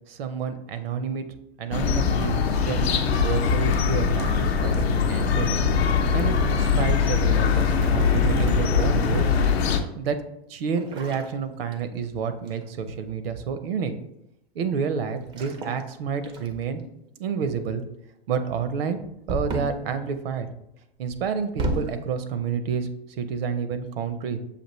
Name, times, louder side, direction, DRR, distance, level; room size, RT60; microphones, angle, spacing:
voice 1, 0.1-1.2 1.6-2.9 3.1-5.6 6.1-9.3 10.0-10.2 10.5-13.9 14.6-16.8 17.2-17.8 18.3-19.0 19.3-20.5 21.0-22.9 23.2-24.4, right 6 dB, 70° right, 10 dB, 0.6 m, -29 dB
sound 1, 1.7-9.8, left 5 dB, 75° left, 0.7 m, -22 dB
sound 2, 3.3-4.1 5.3-5.6 7.7-9.4 10.7-12.1 12.5-12.8 15.2-15.9 16.2-16.8 19.3-19.9 21.1-22.0, right 2 dB, 15° right, 0.3 m, -34 dB
6.7 x 2.5 x 3.0 m, 0.83 s
hypercardioid pair, 130°, 31 cm